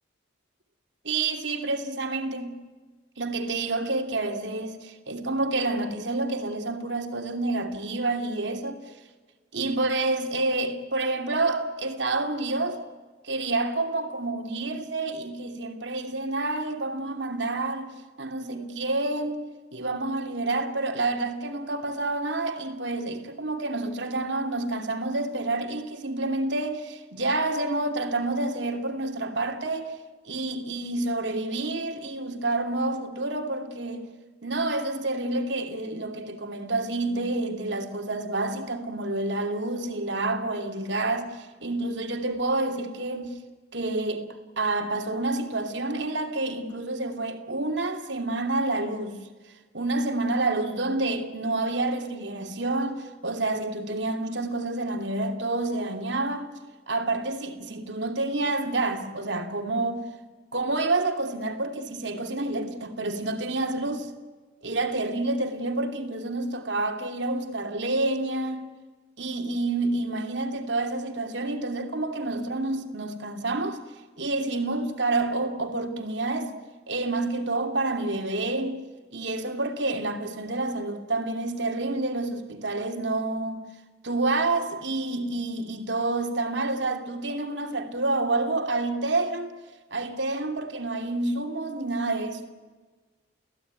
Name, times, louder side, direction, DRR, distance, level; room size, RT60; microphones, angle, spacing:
voice 1, 1.0-2.6 3.2-8.8 9.5-12.8 13.2-17.9 18.2-29.9 30.3-34.0 34.4-43.4 43.7-44.2 44.6-49.2 49.7-56.5 56.9-60.0 60.5-64.1 64.6-68.7 69.2-73.8 74.2-76.5 76.9-78.8 79.1-83.6 84.0-89.5 89.9-92.4, right 2 dB, 65° right, 2.8 m, -28 dB
29.5 x 17.0 x 9.6 m
head